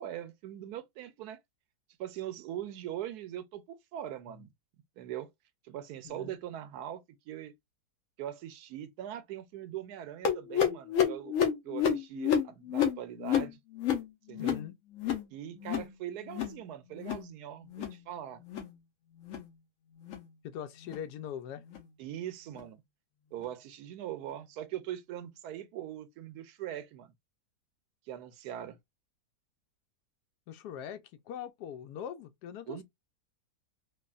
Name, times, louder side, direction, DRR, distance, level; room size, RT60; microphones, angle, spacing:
voice 1, 0.0-1.4 2.0-4.5 5.0-5.3 5.6-7.5 8.2-11.4 11.6-13.6 14.3-14.7 15.3-18.4 22.0-22.8 23.3-27.1 28.1-28.8 32.7-32.8, right 11 dB, 80° right, 1.1 m, -41 dB
voice 2, 6.0-6.4 14.4-14.8 20.4-21.6 30.5-32.8, left 9 dB, 85° left, 1.1 m, -42 dB
sound 1, 10.2-15.3 15.5-15.9 16.2-16.6 16.9-17.3 17.7-18.0 18.4-18.7 19.2-19.5 20.0-20.3 20.8-21.0 21.7-21.8 22.5-22.6 23.4-23.5, left 8 dB, 60° left, 1.1 m, -31 dB
3.3 x 2.4 x 2.3 m
omnidirectional pair, 1.7 m